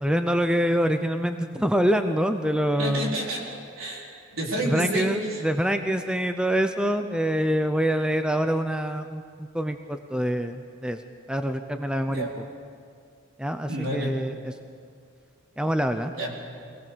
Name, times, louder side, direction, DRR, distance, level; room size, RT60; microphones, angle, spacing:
voice 1, 0.0-3.2 4.6-11.0 11.3-12.3 13.4-14.5 15.6-16.1, equal, 5° right, 7 dB, 0.6 m, -25 dB
voice 2, 2.8-3.5 3.8-5.4 12.1-12.3 13.7-14.1 16.1-16.3, right 1 dB, 70° right, -2 dB, 4.5 m, -30 dB
25.5 x 18.0 x 6.9 m, 2.3 s
head